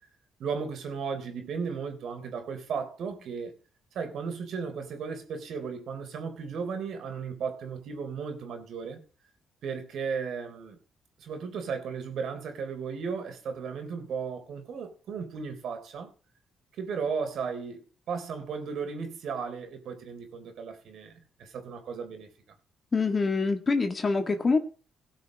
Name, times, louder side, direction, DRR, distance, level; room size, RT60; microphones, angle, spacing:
voice 1, 0.4-3.5 3.9-9.0 9.6-10.8 11.2-16.1 16.8-21.1 21.4-22.3, right 5 dB, 70° right, 3.6 m, -35 dB
voice 2, 22.9-24.6, left 4 dB, 35° left, 1.8 m, -25 dB
18.5 x 6.3 x 5.4 m
cardioid pair, 90°, 0 cm